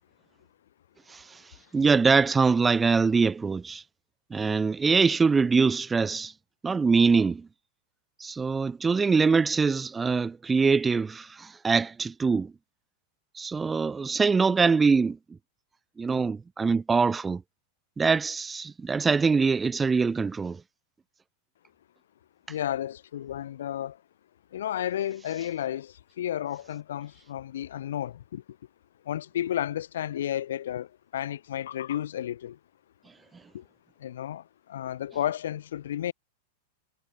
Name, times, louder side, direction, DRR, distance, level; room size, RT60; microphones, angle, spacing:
voice 1, 1.7-3.8 4.3-6.3 6.6-7.5 8.2-12.5 13.4-15.2 16.0-17.4 18.0-20.6, right 4 dB, 10° right, 0.8 m, -23 dB
voice 2, 22.5-24.0 24.5-28.4 29.0-32.6 33.5-33.6 34.0-36.1, left 11 dB, 85° left, 6.7 m, -32 dB
supercardioid pair, 180°, 0 cm